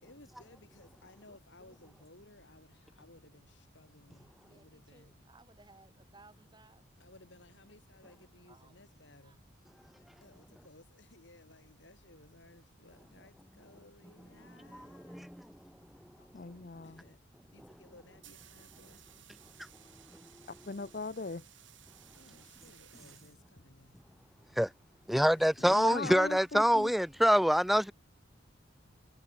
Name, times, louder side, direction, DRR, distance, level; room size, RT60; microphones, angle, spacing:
voice 1, 0.0-5.2 7.0-9.4 10.2-15.3 16.8-17.2 17.5-19.0 22.1-24.0 25.3-25.7, left 2 dB, 70° left, 5.9 m, -59 dB
voice 2, 4.2-6.9 8.4-8.8 9.2-9.4, right 3 dB, 25° right, 5.2 m, -61 dB
voice 3, 14.6-15.5 17.6-17.7 24.6-24.7 25.1-27.9, equal, ahead, 0.5 m, -26 dB
voice 4, 16.3-17.0 20.7-21.4 25.6-26.9, left 3 dB, 50° left, 0.8 m, -39 dB
sound 1, 17.9-23.9, right 11 dB, 80° right, 5.5 m, -59 dB
head